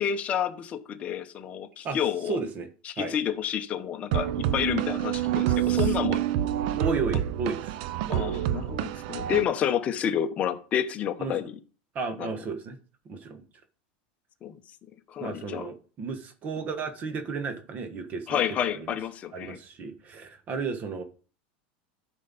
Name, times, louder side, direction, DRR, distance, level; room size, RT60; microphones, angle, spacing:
voice 1, 0.0-2.4 2.8-6.2 7.1-7.2 8.1-11.6 12.2-12.3 14.4-14.5 15.1-15.7 18.3-19.6, left 9 dB, 30° left, 0.9 m, -29 dB
voice 2, 2.3-2.7 3.0-3.1 5.6-5.9 6.8-7.7 11.2-11.4 11.9-12.8 13.0-13.4 15.2-18.9 19.3-21.0, right 4 dB, 30° right, 1.4 m, -33 dB
sound 1, 4.1-9.4, right 12 dB, 65° right, 0.6 m, -27 dB
13.0 x 5.5 x 4.1 m
supercardioid pair, 150°, 5 cm